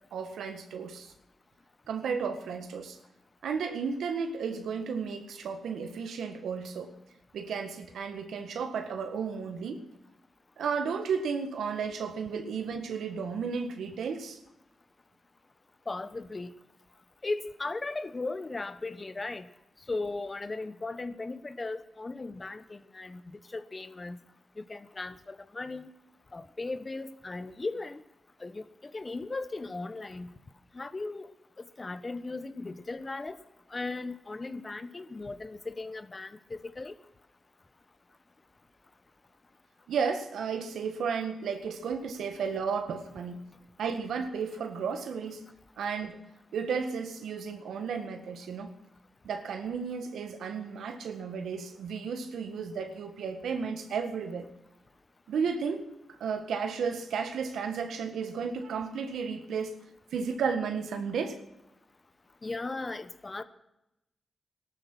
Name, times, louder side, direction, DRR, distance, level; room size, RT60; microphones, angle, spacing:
voice 1, 0.1-1.1 1.9-3.0 3.4-6.9 7.3-9.8 10.6-14.4 39.9-43.4 43.8-45.4 45.8-46.2 46.5-48.7 49.2-54.5 55.3-55.9 56.2-59.8 60.1-61.4, right 6 dB, 85° right, 7 dB, 1.6 m, -33 dB
voice 2, 15.9-16.5 17.2-19.5 19.9-24.2 24.6-25.9 26.3-28.0 28.4-30.3 30.7-31.3 31.8-33.4 33.7-36.9 62.4-63.4, left 3 dB, 40° left, 12 dB, 1.2 m, -37 dB
17.0 x 12.5 x 6.2 m, 0.90 s
supercardioid pair, 45°, 0 cm